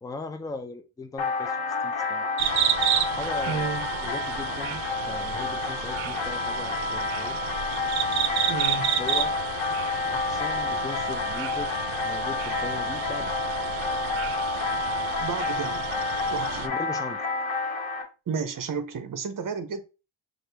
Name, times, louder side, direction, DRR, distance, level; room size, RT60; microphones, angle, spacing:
voice 1, 0.0-2.3 3.1-7.4 9.0-9.3 10.1-13.4 16.6-17.2, left 3 dB, 10° left, 0.3 m, -39 dB
sound 1, 1.2-18.0, left 4 dB, 90° left, 1.1 m, -29 dB
sound 2, 2.4-16.7, right 10 dB, 85° right, 0.6 m, -31 dB
voice 2, 3.5-3.9 8.5-8.9 15.2-15.9 16.3-16.7 18.3-19.8, right 6 dB, 45° right, 0.7 m, -32 dB
6.2 x 2.5 x 3.3 m
wide cardioid pair, 165°, 46 cm